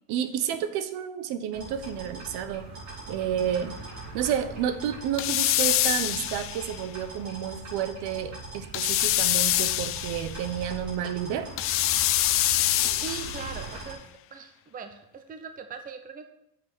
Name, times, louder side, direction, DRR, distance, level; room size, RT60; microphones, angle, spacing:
voice 1, 0.1-2.6 3.1-3.8 4.1-11.5, right 9 dB, 55° right, 10 dB, 1.1 m, -30 dB
sound 1, 1.5-13.9, right 2 dB, 35° right, 4.2 m, -41 dB
sound 2, 5.2-6.7 8.7-10.4 11.6-13.6, left 15 dB, 30° left, 0.4 m, -25 dB
voice 2, 12.9-14.0 14.3-16.2, right 6 dB, 20° right, 7 dB, 0.8 m, -40 dB
7.9 x 6.2 x 7.8 m, 0.79 s
supercardioid pair, 120°, 47 cm